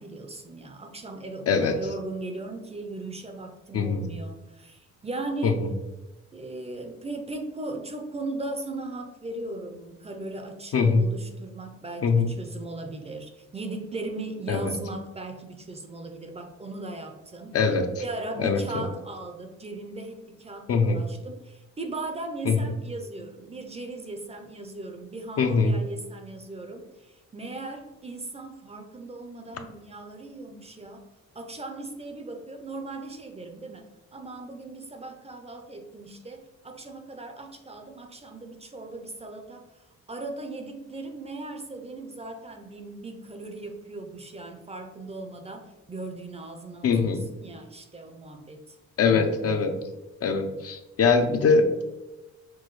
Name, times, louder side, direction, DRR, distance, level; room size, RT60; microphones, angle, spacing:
voice 1, 0.0-5.6 6.3-17.6 18.0-31.1 31.3-39.8 40.1-47.1 47.4-48.8, right 2 dB, 20° right, 5 dB, 0.5 m, -38 dB
voice 2, 1.5-1.8 3.7-4.1 5.4-5.7 10.7-11.0 12.0-12.3 14.5-14.7 17.5-17.9 18.4-18.9 20.7-21.0 22.5-22.6 25.4-25.7 46.8-47.2 49.0-49.8 50.2-51.8, left 4 dB, 50° left, 6 dB, 0.5 m, -22 dB
5.9 x 2.2 x 3.1 m, 1.0 s
cardioid pair, 90°, 30 cm